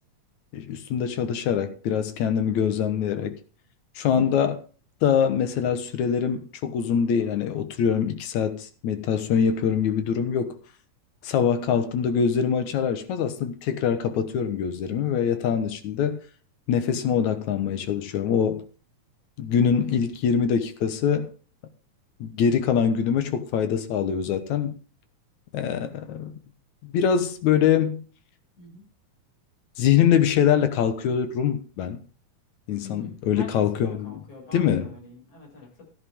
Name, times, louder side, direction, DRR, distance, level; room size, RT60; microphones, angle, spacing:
voice 1, 0.5-3.4 4.0-4.6 5.0-10.6 11.2-16.2 16.7-18.6 19.4-21.3 22.2-24.8 25.5-26.3 26.8-28.0 29.8-32.0 32.7-34.2 34.5-34.9, left 8 dB, 70° left, 2.5 m, -24 dB
voice 2, 4.1-4.5 28.6-28.8 32.8-35.8, left 3 dB, 50° left, 7.5 m, -45 dB
14.5 x 10.5 x 3.7 m
omnidirectional pair, 3.7 m